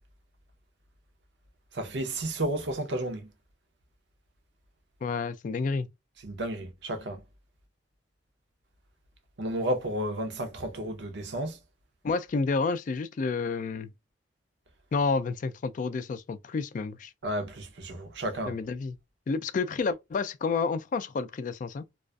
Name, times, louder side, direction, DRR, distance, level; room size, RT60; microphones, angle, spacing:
voice 1, 1.7-3.3 6.2-7.2 9.4-11.6 17.2-18.6, right 1 dB, 70° right, 0.7 m, -32 dB
voice 2, 5.0-5.9 12.0-13.9 14.9-17.1 18.5-19.0 19.3-21.8, left 4 dB, 45° left, 0.3 m, -30 dB
2.4 x 2.3 x 2.2 m
head